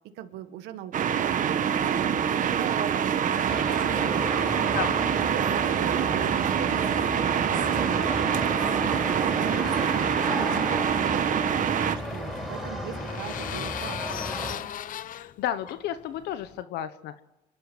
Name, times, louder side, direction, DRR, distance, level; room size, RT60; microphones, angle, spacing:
voice 1, 0.2-4.6 5.2-14.2, right 11 dB, 90° right, 9 dB, 1.7 m, -41 dB
sound 1, 0.9-12.0, right 8 dB, 50° right, 1.3 m, -25 dB
sound 2, 3.5-14.5, equal, ahead, 6.3 m, -34 dB
voice 2, 9.5-9.8 15.1-17.2, left 11 dB, 80° left, 11 dB, 1.0 m, -33 dB
sound 3, 11.1-16.6, left 11 dB, 55° left, 0.7 m, -38 dB
26.5 x 11.5 x 9.1 m, 0.98 s
cardioid pair, 110°, 17 cm